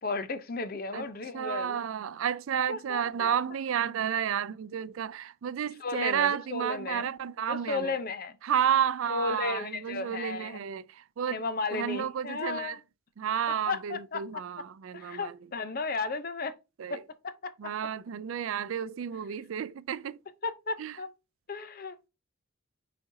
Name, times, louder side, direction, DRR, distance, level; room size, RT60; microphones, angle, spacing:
voice 1, 0.0-1.8 2.7-3.4 5.8-7.1 7.5-8.4 9.1-10.6 11.3-12.8 13.7-14.2 14.9-16.5 16.9-17.5 20.4-21.1 21.5-22.1, left 3 dB, 45° left, 0.7 m, -34 dB
voice 2, 1.3-7.9 8.4-11.4 11.7-12.8 13.2-15.3 16.8-17.0 17.6-20.2 20.8-21.0, right 8 dB, 80° right, 0.4 m, -31 dB
8.5 x 4.2 x 2.7 m
head